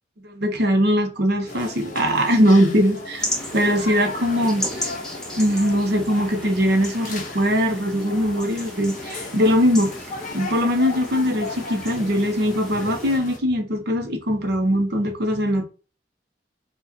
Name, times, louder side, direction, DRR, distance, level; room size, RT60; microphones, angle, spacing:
voice 1, 0.2-3.2 3.5-4.9 5.4-9.9 10.3-15.7, equal, 55° right, 0.8 m, -21 dB
sound 1, 1.5-13.4, left 3 dB, 45° left, 0.9 m, -36 dB
sound 2, 3.2-13.2, equal, 5° left, 0.9 m, -35 dB
4.7 x 2.4 x 2.7 m
head